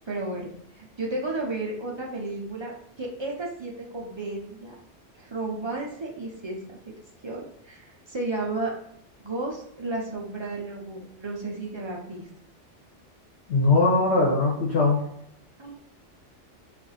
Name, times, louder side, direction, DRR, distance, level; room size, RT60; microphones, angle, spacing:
voice 1, 0.1-2.7 3.0-4.7 5.1-6.6 7.2-8.7 9.2-12.3 15.6-15.8, right 2 dB, 45° right, -1 dB, 0.3 m, -33 dB
voice 2, 13.5-15.0, left 3 dB, 65° left, -3 dB, 1.1 m, -20 dB
2.6 x 2.4 x 4.0 m, 0.75 s
omnidirectional pair, 1.2 m